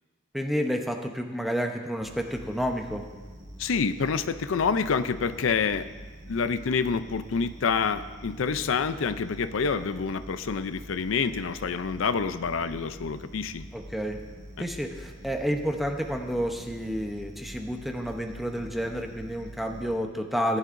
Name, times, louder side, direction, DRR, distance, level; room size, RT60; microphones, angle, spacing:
voice 1, 0.3-3.0 13.7-14.2 14.6-20.6, equal, ahead, 3 dB, 0.8 m, -30 dB
sound 1, 2.0-20.0, equal, 70° right, 1.8 m, -45 dB
voice 2, 3.6-5.9 6.3-13.6, left 5 dB, 80° left, 11 dB, 0.5 m, -27 dB
18.5 x 11.0 x 2.6 m, 1.4 s
head